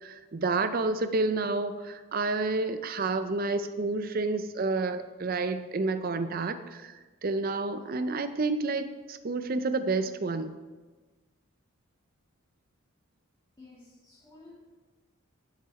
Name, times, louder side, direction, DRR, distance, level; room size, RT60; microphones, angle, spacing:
voice 1, 0.0-6.9 7.2-10.5, right 3 dB, 40° right, 10 dB, 0.5 m, -29 dB
voice 2, 13.6-14.6, left 3 dB, 20° left, -7 dB, 1.7 m, -52 dB
11.5 x 6.0 x 4.2 m, 1.3 s
head